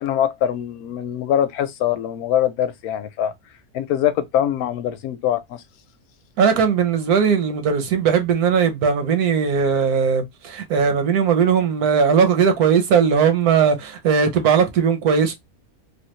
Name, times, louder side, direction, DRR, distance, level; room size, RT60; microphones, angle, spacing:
voice 1, 0.0-3.3 3.7-5.6, left 10 dB, 85° left, 1.1 m, -23 dB
voice 2, 6.4-15.4, right 6 dB, 85° right, 1.3 m, -18 dB
3.3 x 2.4 x 3.0 m
omnidirectional pair, 1.5 m